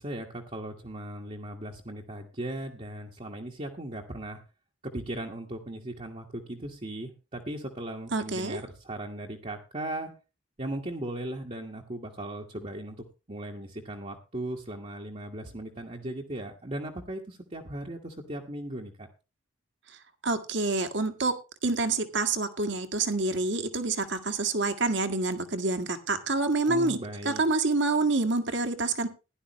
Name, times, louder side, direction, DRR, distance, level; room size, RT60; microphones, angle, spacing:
voice 1, 0.0-4.4 4.8-10.1 10.6-19.1 26.6-27.4, right 1 dB, 30° right, 1.5 m, -37 dB
voice 2, 8.1-8.6 20.2-21.3 21.6-27.0 27.2-29.1, right 3 dB, 55° right, 1.8 m, -27 dB
16.0 x 11.5 x 3.1 m
head